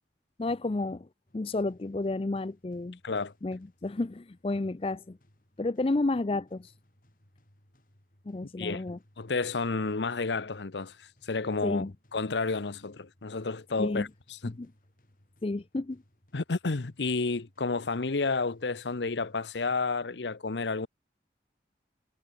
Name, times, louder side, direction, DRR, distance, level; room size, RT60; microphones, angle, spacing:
voice 1, 0.4-1.1 1.3-3.0 3.4-5.2 5.6-6.7 8.3-9.0 11.6-11.9 13.8-14.1 14.5-14.7 15.4-16.0, left 2 dB, 30° left, 0.4 m, -31 dB
sound 1, 1.3-20.3, left 1 dB, 50° left, 3.4 m, -65 dB
voice 2, 9.2-11.8 12.1-14.1 14.4-14.6 16.3-20.9, left 3 dB, 85° left, 0.9 m, -31 dB
head